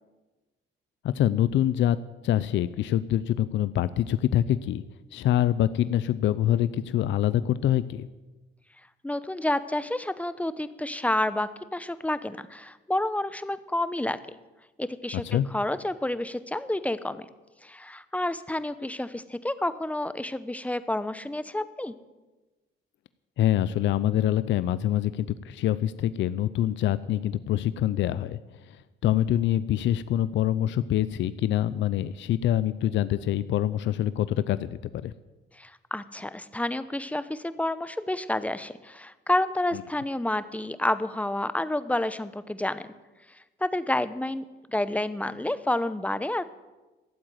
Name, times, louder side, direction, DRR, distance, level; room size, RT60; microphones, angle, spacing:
voice 1, 1.0-2.0 2.2-4.8 5.1-8.1 15.1-15.5 23.4-28.4 28.7-28.8 29.0-35.1, left 12 dB, 70° left, 15 dB, 0.5 m, -25 dB
voice 2, 9.0-14.2 14.8-17.3 17.6-22.0 35.5-42.9 43.3-46.4, left 1 dB, 5° left, 14 dB, 0.8 m, -29 dB
13.0 x 7.7 x 9.2 m, 1.2 s
cardioid pair, 90°, 20 cm